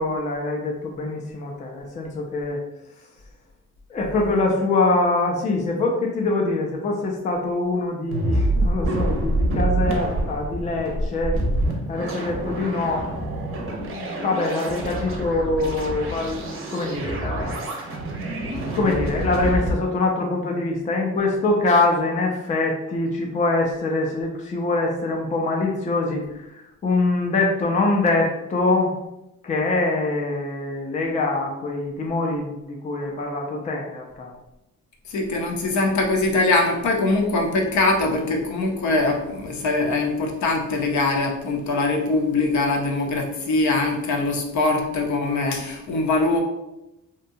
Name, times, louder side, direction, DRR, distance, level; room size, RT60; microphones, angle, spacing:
voice 1, 0.0-2.6 3.9-11.4 11.9-13.1 13.7-18.0 18.3-29.0 29.4-34.3, left 2 dB, 25° left, 0 dB, 0.3 m, -24 dB
sound 1, 8.1-19.7, right 1 dB, 45° right, 0.6 m, -26 dB
voice 2, 35.1-46.4, left 2 dB, 65° left, 1 dB, 0.6 m, -22 dB
2.7 x 2.1 x 2.6 m, 0.92 s
cardioid pair, 120°, 31 cm